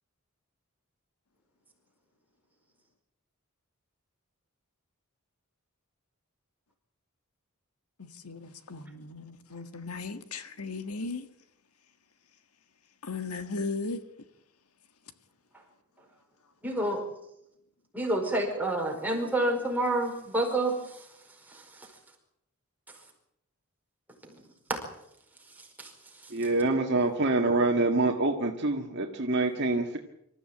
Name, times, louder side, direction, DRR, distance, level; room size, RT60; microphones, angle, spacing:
voice 1, 8.0-11.3 13.0-14.0, left 3 dB, 85° left, 10 dB, 1.7 m, -36 dB
voice 2, 16.6-17.0 17.9-21.1 21.5-21.9 24.2-24.4 24.7-24.8 25.5-26.3, right 1 dB, 10° right, 1 dB, 4.8 m, -29 dB
voice 3, 26.3-30.0, right 2 dB, 50° right, 2 dB, 1.7 m, -26 dB
25.5 x 14.0 x 8.9 m, 0.79 s
head